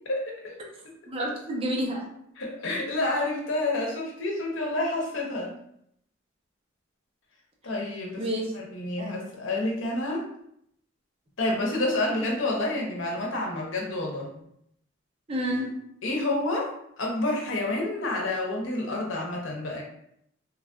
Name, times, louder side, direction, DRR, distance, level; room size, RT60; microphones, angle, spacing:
voice 1, 0.1-0.6 2.4-5.5 7.6-8.2 8.5-10.2 11.4-14.4 16.0-19.8, left 2 dB, 85° left, -1 dB, 0.8 m, -29 dB
voice 2, 1.1-2.1 8.2-8.5 9.0-9.1 15.3-15.8, equal, 30° right, -2 dB, 0.6 m, -29 dB
3.1 x 2.3 x 2.4 m, 0.72 s
head